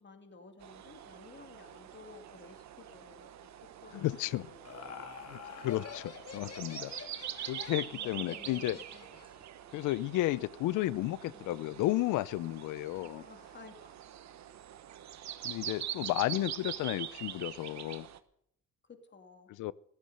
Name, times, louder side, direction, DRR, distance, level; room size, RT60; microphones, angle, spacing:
voice 1, 0.0-3.5 3.8-5.0 7.9-8.6 13.1-14.0 18.8-19.5, left 4 dB, 35° left, 6 dB, 2.5 m, -54 dB
sound 1, 0.6-18.2, right 11 dB, 65° right, 1.2 m, -44 dB
voice 2, 3.9-4.5 5.3-6.9 7.5-8.8 9.7-13.2 15.4-18.1 19.6-19.7, left 16 dB, 85° left, 21 dB, 0.6 m, -33 dB
Laughter, 4.2-9.4, left 6 dB, 55° left, 2.3 m, -47 dB
sound 2, 8.1-13.2, right 3 dB, 15° right, 2.3 m, -62 dB
15.0 x 13.0 x 6.7 m, 0.72 s
cardioid pair, 90°, 30 cm